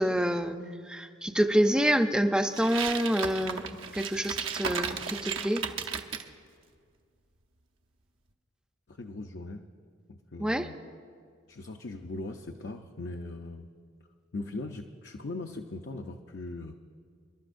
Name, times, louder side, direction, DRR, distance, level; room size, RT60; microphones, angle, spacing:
voice 1, 0.0-5.7 10.4-10.7, equal, 5° right, 6 dB, 0.5 m, -27 dB
sound 1, 2.5-6.3, right 6 dB, 80° right, 0.9 m, -34 dB
voice 2, 8.9-9.7 10.1-10.8 11.5-13.7 14.3-16.7, left 2 dB, 55° left, 3 dB, 0.6 m, -39 dB
28.0 x 12.0 x 2.6 m, 2.1 s
head